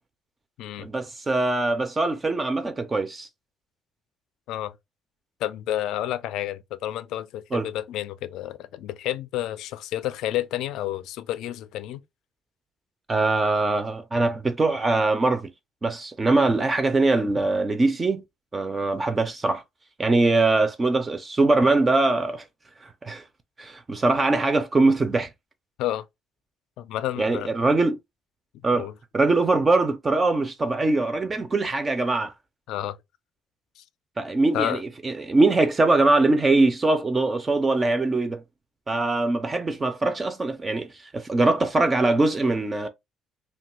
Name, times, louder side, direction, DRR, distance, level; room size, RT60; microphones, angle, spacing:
voice 1, 0.8-3.3 7.5-7.7 13.1-15.5 15.8-18.2 18.5-19.6 20.0-22.4 22.8-23.2 23.6-25.3 27.2-28.0 28.6-28.9 29.1-32.3 34.2-38.4 38.9-42.9, right 2 dB, 20° right, 0.4 m, -22 dB
voice 2, 5.4-12.0 25.8-26.0 26.8-27.5 28.7-28.9 32.7-33.0 33.8-33.9 34.5-34.8, left 13 dB, 80° left, 0.3 m, -30 dB
2.9 x 2.2 x 2.9 m
cardioid pair, 145°, 0 cm